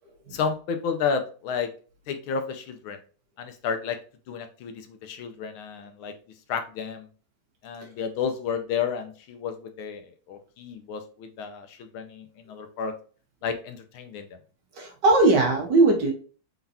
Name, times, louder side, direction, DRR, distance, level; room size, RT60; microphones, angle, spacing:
voice 1, 0.3-1.7 2.1-3.0 3.4-4.0 4.3-6.1 6.5-7.1 7.6-12.9 13.4-14.3, left 6 dB, 90° left, 7 dB, 1.5 m, -31 dB
voice 2, 14.7-16.1, right 2 dB, 60° right, 1 dB, 1.6 m, -19 dB
4.5 x 3.9 x 2.7 m, 0.39 s
omnidirectional pair, 2.2 m